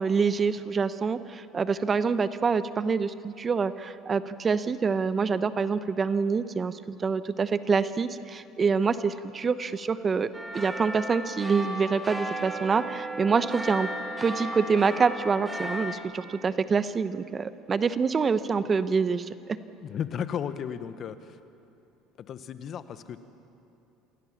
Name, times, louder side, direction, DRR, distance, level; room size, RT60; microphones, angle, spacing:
voice 1, 0.0-13.9 14.2-19.6, right 5 dB, 30° right, 13 dB, 0.9 m, -26 dB
sound 1, 10.3-16.0, right 1 dB, 15° right, 3.2 m, -35 dB
voice 2, 19.8-21.4 22.2-23.2, left 8 dB, 50° left, 12 dB, 1.1 m, -34 dB
27.5 x 17.0 x 7.3 m, 2.7 s
supercardioid pair, 85°, 0 cm